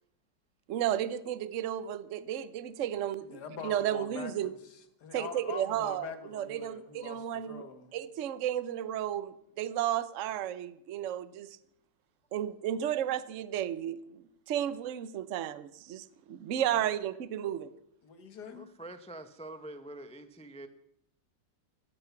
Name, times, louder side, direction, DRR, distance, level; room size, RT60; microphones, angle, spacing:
voice 1, 0.7-4.5 5.1-7.6 7.9-11.6 12.3-17.7, right 11 dB, 55° right, 15 dB, 0.9 m, -33 dB
voice 2, 3.2-7.9 16.7-16.8 18.0-18.7, left 6 dB, 60° left, 8 dB, 2.0 m, -44 dB
voice 3, 18.5-20.7, right 1 dB, 10° left, 9 dB, 0.3 m, -45 dB
16.5 x 13.5 x 5.9 m, 0.75 s
omnidirectional pair, 2.1 m